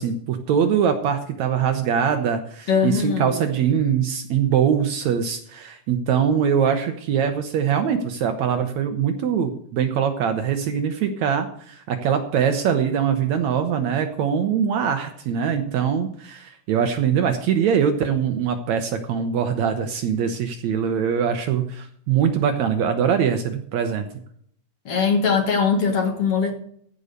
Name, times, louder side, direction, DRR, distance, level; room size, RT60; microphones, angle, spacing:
voice 1, 0.0-24.1, right 7 dB, 70° right, 7 dB, 2.0 m, -22 dB
voice 2, 2.7-3.4 24.9-26.6, left 5 dB, 50° left, 3 dB, 2.3 m, -21 dB
15.5 x 5.4 x 6.7 m, 0.64 s
omnidirectional pair, 3.9 m